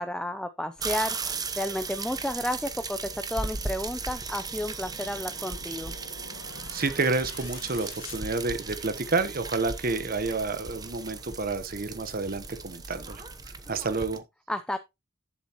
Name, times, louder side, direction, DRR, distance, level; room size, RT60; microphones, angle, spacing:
voice 1, 0.0-5.9 14.5-14.8, left 1 dB, 5° left, 0.5 m, -32 dB
sound 1, 0.8-14.1, left 1 dB, 45° left, 2.1 m, -52 dB
sound 2, 0.8-14.2, right 4 dB, 20° right, 0.9 m, -37 dB
sound 3, 4.5-9.1, left 4 dB, 80° left, 1.4 m, -48 dB
voice 2, 6.7-14.2, right 3 dB, 45° right, 1.0 m, -29 dB
11.5 x 7.2 x 3.0 m
head